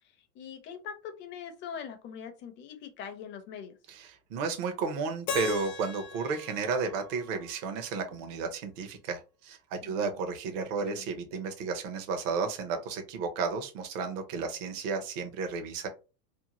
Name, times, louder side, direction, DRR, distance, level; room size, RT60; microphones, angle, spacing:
voice 1, 0.3-3.8 9.8-10.1 10.8-11.1, left 7 dB, 25° left, 7 dB, 0.4 m, -42 dB
voice 2, 3.9-15.9, right 4 dB, 55° right, 5 dB, 0.8 m, -33 dB
Keyboard (musical), 5.3-8.2, left 4 dB, 90° left, 0.7 m, -40 dB
2.8 x 2.1 x 2.9 m, 0.32 s
hypercardioid pair, 115°, 49 cm